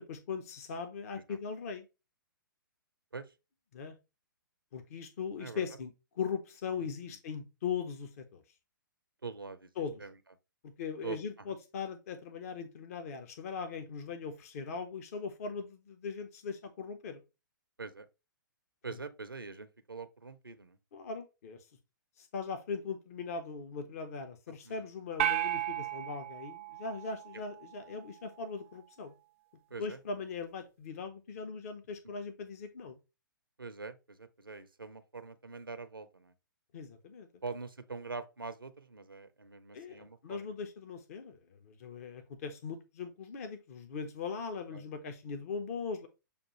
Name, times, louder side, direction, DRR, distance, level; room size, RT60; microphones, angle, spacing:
voice 1, 0.0-1.8 3.7-4.0 4.7-8.4 9.8-9.9 10.8-17.2 20.9-21.6 22.2-29.1 29.8-33.0 36.7-37.3 39.7-41.4 41.6-46.1, left 5 dB, 45° left, 0.7 m, -40 dB
voice 2, 6.8-7.2 9.2-9.7 10.0-10.1 11.0-11.5 17.8-18.1 18.8-20.8 24.6-24.9 29.7-30.0 33.6-36.3 37.4-40.5 44.7-44.9, right 4 dB, 85° right, 0.6 m, -44 dB
sound 1, 25.2-27.7, right 12 dB, 35° right, 0.3 m, -34 dB
6.8 x 2.4 x 2.9 m
figure-of-eight pair, 120°, 11 cm